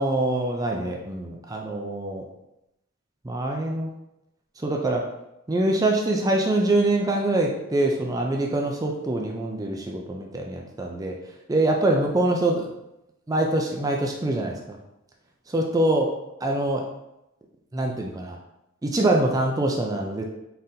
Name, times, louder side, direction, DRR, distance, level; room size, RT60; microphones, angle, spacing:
voice 1, 0.0-2.2 3.2-3.9 4.6-5.0 5.5-11.2 11.5-12.7 13.3-14.8 15.5-16.1 16.4-16.9 17.7-18.4 18.8-20.2, right 2 dB, 15° right, 1 dB, 0.3 m, -24 dB
4.0 x 3.7 x 2.6 m, 0.87 s
head